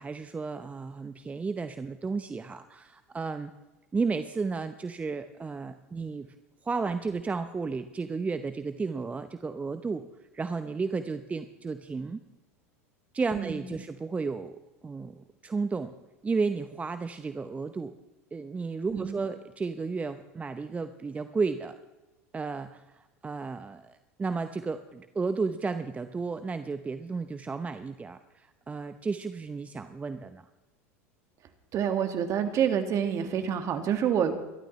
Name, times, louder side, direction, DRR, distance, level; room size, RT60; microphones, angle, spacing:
voice 1, 0.0-3.5 3.9-6.3 6.6-10.1 10.3-12.2 13.1-15.9 16.2-17.9 18.3-21.8 22.3-30.5, right 4 dB, 20° right, 10 dB, 0.8 m, -33 dB
voice 2, 31.7-34.4, right 8 dB, 45° right, 7 dB, 1.9 m, -27 dB
24.5 x 13.0 x 3.2 m, 1.1 s
hypercardioid pair, 85°, 8 cm